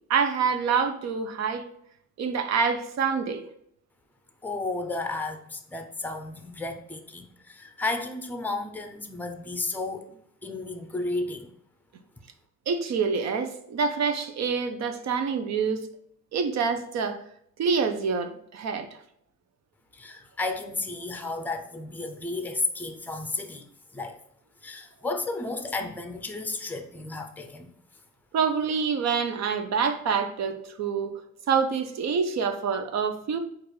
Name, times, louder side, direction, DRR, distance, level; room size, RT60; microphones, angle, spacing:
voice 1, 0.1-1.6 2.2-3.4 12.7-15.9 16.3-17.2 17.6-18.9 28.3-31.2 31.5-33.4, right 5 dB, 60° right, 0.6 m, -26 dB
voice 2, 4.4-10.2 10.4-11.5 19.9-24.2 24.6-27.7, left 3 dB, 5° left, 0.5 m, -33 dB
4.4 x 2.5 x 4.6 m
cardioid pair, 90°, 30 cm